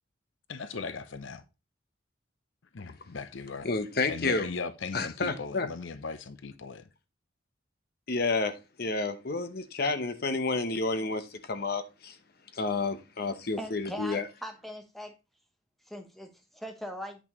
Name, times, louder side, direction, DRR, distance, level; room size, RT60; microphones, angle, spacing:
voice 1, 0.5-1.4 2.7-3.7 4.1-6.9, left 4 dB, 75° left, 0.6 m, -38 dB
voice 2, 3.6-4.5 4.9-5.7 8.1-12.1 12.5-14.3, left 3 dB, 50° left, 1.0 m, -30 dB
voice 3, 13.6-15.1 15.9-17.2, equal, ahead, 1.0 m, -40 dB
8.8 x 6.1 x 3.1 m
head